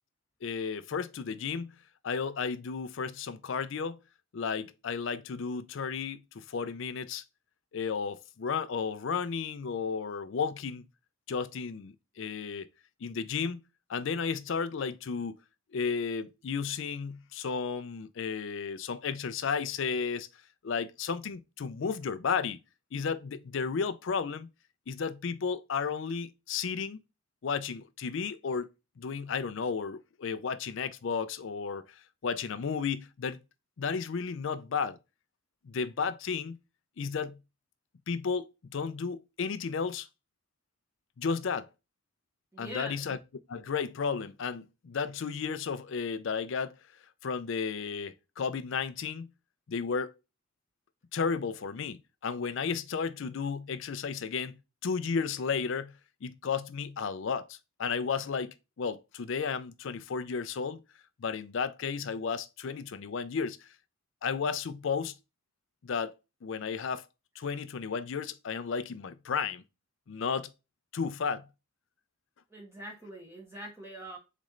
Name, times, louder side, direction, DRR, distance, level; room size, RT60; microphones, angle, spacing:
voice 1, 0.4-1.8 2.0-4.0 4.3-7.2 7.7-10.9 11.3-12.7 13.0-13.6 13.9-15.4 15.7-20.3 20.6-22.6 22.9-24.5 24.9-27.0 27.4-28.7 29.0-33.4 33.8-35.0 35.6-36.6 37.0-37.4 38.1-40.1 41.2-41.7 42.6-43.2 43.5-46.7 47.2-49.3 49.7-50.1 51.1-60.8 61.2-63.7 64.2-65.1 65.8-66.1 66.4-67.1 67.4-69.6 70.1-70.5 70.9-71.5, left 5 dB, 55° left, 0.4 m, -33 dB
voice 2, 42.5-43.0 72.5-74.2, equal, 10° right, 1.1 m, -43 dB
4.1 x 3.1 x 3.7 m
head